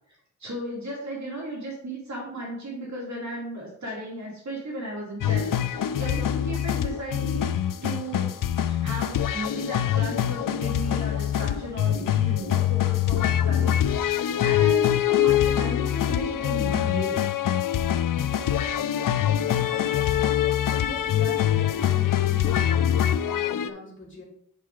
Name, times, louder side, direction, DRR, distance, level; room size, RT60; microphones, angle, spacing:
voice 1, 0.4-7.6 7.8-17.3, right 1 dB, 60° right, -4 dB, 2.6 m, -35 dB
sound 1, 5.2-23.7, left 10 dB, 90° left, 0.5 m, -24 dB
voice 2, 20.8-24.2, left 2 dB, 40° left, -4 dB, 3.0 m, -41 dB
8.2 x 4.6 x 4.6 m, 0.69 s
wide cardioid pair, 115°, 31 cm